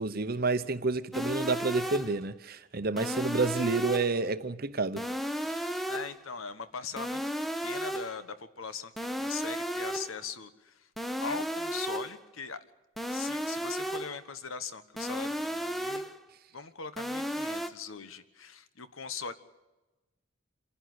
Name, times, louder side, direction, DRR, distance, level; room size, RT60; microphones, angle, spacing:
voice 1, 0.0-5.0 5.5-5.6, right 3 dB, 45° right, 0.9 m, -29 dB
sound 1, 1.1-2.2 3.0-4.2 5.0-6.2 7.0-8.2 9.0-10.2 11.0-12.2 13.0-14.2 15.0-16.2 17.0-17.7, equal, ahead, 0.8 m, -34 dB
voice 2, 5.9-7.2 7.6-10.9 11.2-12.6 13.1-16.0 16.5-19.3, left 5 dB, 80° left, 1.3 m, -40 dB
27.0 x 11.5 x 9.5 m
head